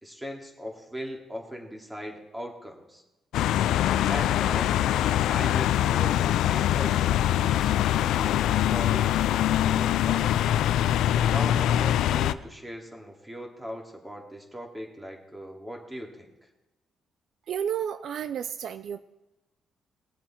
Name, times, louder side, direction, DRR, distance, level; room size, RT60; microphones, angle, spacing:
voice 1, 0.0-3.0 3.8-4.7 5.3-7.8 8.1-9.1 9.7-10.3 11.2-16.3, equal, 10° right, 1 dB, 2.6 m, -39 dB
sound 1, 3.3-12.3, left 12 dB, 85° left, 0.4 m, -23 dB
voice 2, 17.5-19.0, right 9 dB, 65° right, 13 dB, 0.4 m, -31 dB
20.5 x 7.4 x 4.5 m, 0.99 s
cardioid pair, 90°, 0 cm